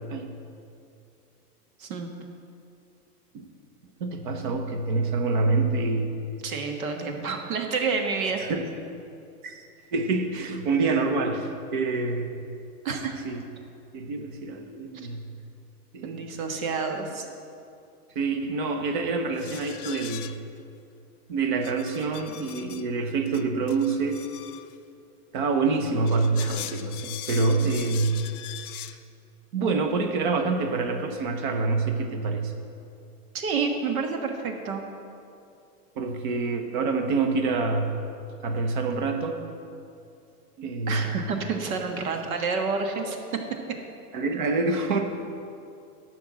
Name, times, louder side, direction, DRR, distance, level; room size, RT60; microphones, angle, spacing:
voice 1, 1.8-2.1 6.4-8.4 12.8-13.1 16.0-17.2 33.3-34.8 40.9-43.2, right 4 dB, 60° right, 4 dB, 1.5 m, -29 dB
voice 2, 4.0-6.1 8.4-8.7 9.4-9.6 9.9-12.5 13.2-13.4 13.9-15.3 15.9-16.3 18.1-20.3 21.3-24.2 25.3-28.2 29.5-32.5 36.0-37.9 38.4-39.4 40.6-41.0 44.1-45.0, right 3 dB, 30° right, 6 dB, 0.8 m, -26 dB
sound 1, 19.4-20.6 21.6-22.9 23.3-24.8 25.9-29.0, left 12 dB, 65° left, 0.7 m, -41 dB
12.0 x 6.0 x 7.7 m, 2.6 s
supercardioid pair, 175°, 47 cm